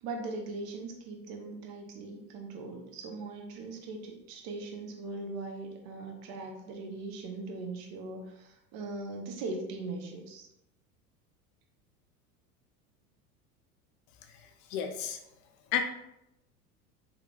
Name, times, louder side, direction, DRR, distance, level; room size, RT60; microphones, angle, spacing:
voice 1, 0.0-10.5, right 3 dB, 50° right, 1 dB, 1.0 m, -40 dB
voice 2, 14.7-15.2 15.7-15.8, left 8 dB, 50° left, 5 dB, 0.5 m, -30 dB
3.3 x 2.3 x 3.8 m, 0.85 s
hypercardioid pair, 80°, 47 cm